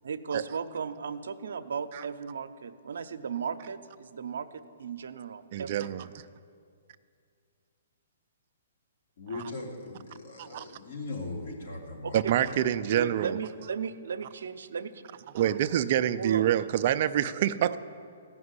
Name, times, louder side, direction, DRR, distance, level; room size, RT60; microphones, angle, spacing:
voice 1, 0.0-5.9 12.9-15.0 16.2-16.5 17.6-17.8, right 6 dB, 75° right, 9 dB, 0.7 m, -36 dB
voice 2, 5.5-6.1 9.3-9.4 10.4-10.6 12.1-13.4 15.3-17.8, right 11 dB, 45° right, 12 dB, 0.4 m, -26 dB
voice 3, 9.2-12.7, left 2 dB, 70° left, -1 dB, 3.1 m, -39 dB
15.5 x 6.1 x 9.7 m, 2.3 s
hypercardioid pair, 150°, 0 cm